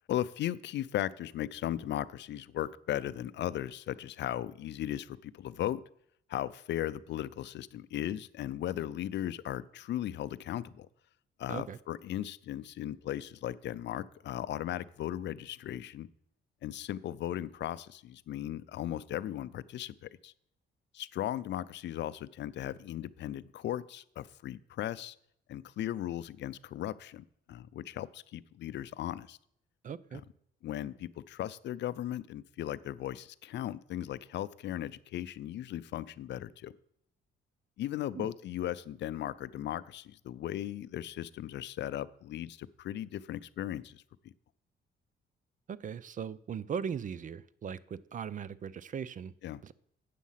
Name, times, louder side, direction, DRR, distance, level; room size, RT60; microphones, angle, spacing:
voice 1, 0.1-5.8 6.3-10.9 11.4-16.1 16.6-20.3 20.9-25.2 25.5-29.4 30.1-30.2 30.6-36.7 37.8-44.3 49.4-49.6, left 12 dB, 65° left, 17 dB, 0.4 m, -37 dB
voice 2, 29.8-30.2 38.1-38.3 45.7-49.3 49.6-49.7, right 7 dB, 40° right, 19 dB, 0.5 m, -39 dB
8.3 x 7.2 x 5.6 m, 0.70 s
cardioid pair, 90°, 20 cm